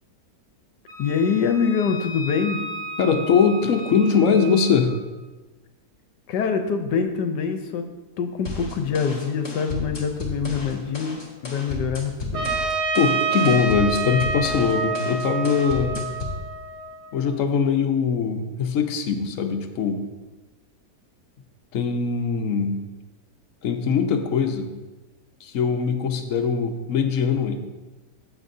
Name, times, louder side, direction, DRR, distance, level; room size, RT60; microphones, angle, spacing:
Wind instrument woodwind instrument, 0.9-4.9, equal, 55° right, 2.2 m, -36 dB
voice 1, 1.0-2.6 6.3-7.8 8.2-12.5, left 6 dB, 80° left, 6 dB, 1.4 m, -25 dB
voice 2, 3.0-4.9 13.0-16.1 17.1-20.0 21.7-22.8 23.6-24.7 25.4-27.6, left 6 dB, 55° left, 4 dB, 1.2 m, -22 dB
sound 1, 8.5-16.4, left 2 dB, 40° left, 2.0 m, -34 dB
Trumpet, 12.3-17.2, right 4 dB, 70° right, 1.9 m, -27 dB
15.0 x 8.4 x 2.7 m, 1.2 s
omnidirectional pair, 1.8 m